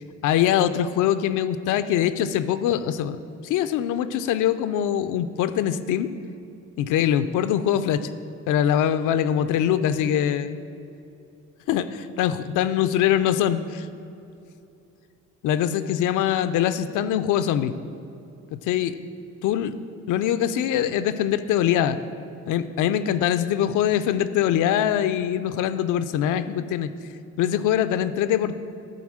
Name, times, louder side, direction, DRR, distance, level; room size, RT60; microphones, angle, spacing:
voice 1, 0.2-6.1 6.8-8.1 8.5-10.6 11.7-13.9 15.4-17.7 18.5-19.0 19.4-19.7 20.1-22.0 22.5-26.9 27.4-28.5, left 10 dB, 80° left, 11 dB, 0.4 m, -23 dB
11.0 x 4.0 x 6.3 m, 2.7 s
cardioid pair, 90°, 30 cm